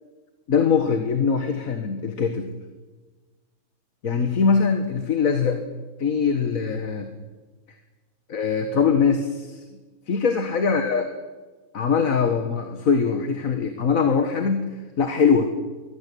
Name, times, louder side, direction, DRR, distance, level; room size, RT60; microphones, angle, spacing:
voice 1, 0.5-2.5 4.0-5.6 6.0-7.1 8.3-9.6 10.1-11.1 11.7-14.6 15.0-15.5, left 5 dB, 65° left, 7 dB, 2.0 m, -22 dB
23.5 x 16.5 x 8.5 m, 1.3 s
omnidirectional pair, 1.6 m